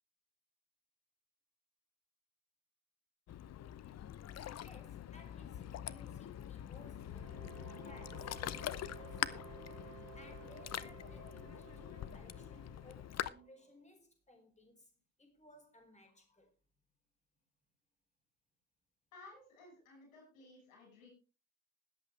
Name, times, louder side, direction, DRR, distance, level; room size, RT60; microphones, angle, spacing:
Ocean, 3.3-13.3, left 11 dB, 40° left, 0.7 m, -44 dB
voice 1, 4.6-14.9 15.2-16.5, left 1 dB, 15° left, 4.9 m, -61 dB
sound 1, 7.0-13.6, right 13 dB, 50° right, 2.4 m, -56 dB
voice 2, 19.1-21.1, left 2 dB, 80° left, 5.7 m, -57 dB
20.5 x 8.3 x 3.3 m
hypercardioid pair, 55°, 39 cm